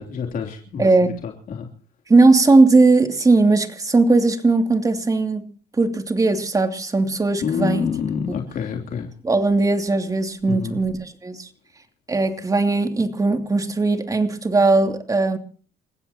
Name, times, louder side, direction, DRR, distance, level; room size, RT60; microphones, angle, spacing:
voice 1, 0.0-0.9 1.2-1.7 7.4-9.1 10.5-10.8, left 7 dB, 55° left, 3.3 m, -27 dB
voice 2, 2.1-5.4 5.8-7.9 9.2-11.5 12.1-15.4, right 3 dB, 20° right, 2.7 m, -18 dB
29.5 x 16.0 x 2.9 m
cardioid pair, 110°, 17 cm